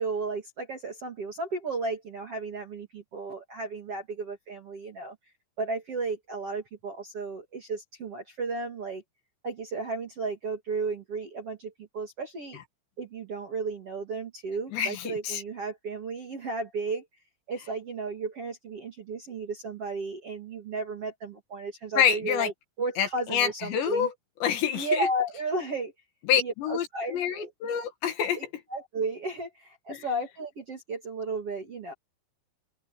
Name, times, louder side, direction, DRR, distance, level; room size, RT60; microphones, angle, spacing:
voice 1, 0.0-5.2 5.6-9.0 9.4-12.6 13.0-17.0 17.5-22.5 22.8-24.1 24.7-25.9 26.3-27.5 28.3-28.4 28.7-31.9, right 3 dB, 40° right, 2.3 m, -34 dB
voice 2, 14.7-15.4 22.0-22.5 23.0-24.1 24.4-25.1 26.3-28.4 29.9-30.0, left 8 dB, 65° left, 3.9 m, -27 dB
open air
omnidirectional pair, 5.7 m